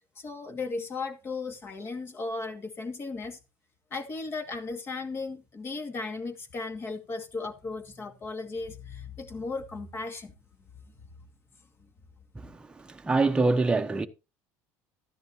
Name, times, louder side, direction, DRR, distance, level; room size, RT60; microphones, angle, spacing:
voice 1, 0.2-3.4 3.9-10.3, left 3 dB, 30° left, 2.3 m, -36 dB
voice 2, 12.4-14.1, right 3 dB, 10° right, 1.1 m, -25 dB
14.0 x 10.5 x 2.9 m
supercardioid pair, 115°, 8 cm